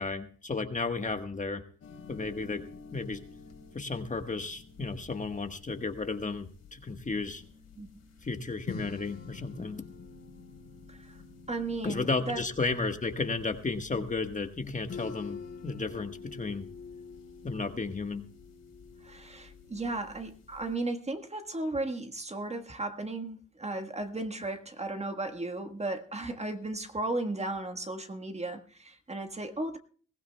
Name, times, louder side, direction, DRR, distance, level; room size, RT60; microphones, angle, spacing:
voice 1, 0.0-1.6 2.1-2.6 2.9-3.2 3.7-7.4 8.2-9.8 11.8-15.4 15.6-16.7 17.4-18.2, left 3 dB, 25° left, 6 dB, 1.4 m, -33 dB
sound 1, 1.8-20.8, left 5 dB, 55° left, 3.3 m, -48 dB
voice 2, 10.9-11.2 11.5-12.4 13.9-14.0 19.0-29.8, right 2 dB, 20° right, 6 dB, 1.5 m, -35 dB
22.0 x 16.0 x 2.3 m, 0.42 s
cardioid pair, 90°, 30 cm